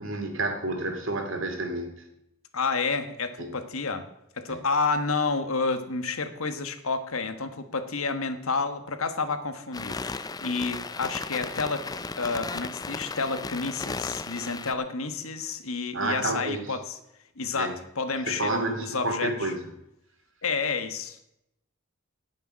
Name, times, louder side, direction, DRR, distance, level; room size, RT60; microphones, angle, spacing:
voice 1, 0.0-1.9 3.4-3.5 4.5-4.6 15.9-16.6 17.6-17.7 18.3-19.6, right 2 dB, 65° right, 4 dB, 2.6 m, -29 dB
voice 2, 2.5-4.1 4.4-11.9 12.2-17.0 17.4-19.5 20.4-21.2, left 4 dB, 80° left, 9 dB, 1.4 m, -30 dB
sound 1, 9.7-14.7, left 3 dB, 20° left, 0.4 m, -35 dB
18.0 x 6.8 x 6.3 m, 0.84 s
head